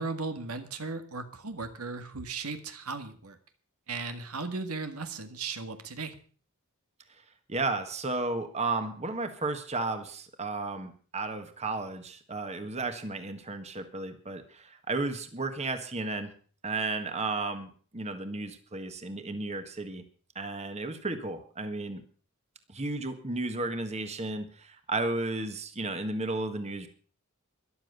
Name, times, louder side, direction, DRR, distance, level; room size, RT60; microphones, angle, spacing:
voice 1, 0.0-3.4 3.9-6.2, right 4 dB, 80° right, 8 dB, 1.8 m, -36 dB
voice 2, 7.5-16.3 16.6-20.0 20.3-22.0 22.7-26.9, right 3 dB, 30° right, 8 dB, 1.6 m, -33 dB
13.5 x 11.5 x 6.7 m, 0.42 s
head